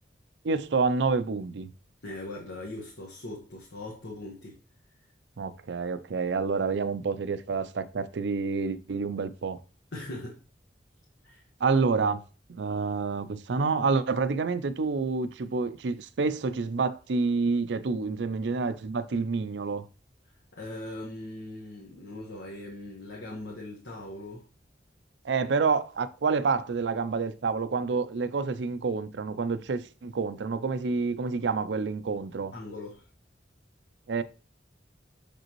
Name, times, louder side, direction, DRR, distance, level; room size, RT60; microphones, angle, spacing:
voice 1, 0.4-1.7 5.4-9.6 11.6-12.2 12.5-19.8 25.2-32.5 34.1-34.2, right 4 dB, 75° right, 0.5 m, -28 dB
voice 2, 2.0-4.6 9.9-10.4 11.2-11.4 20.5-24.5 32.5-33.1, left 1 dB, 80° left, 1.3 m, -40 dB
6.8 x 5.2 x 3.0 m
head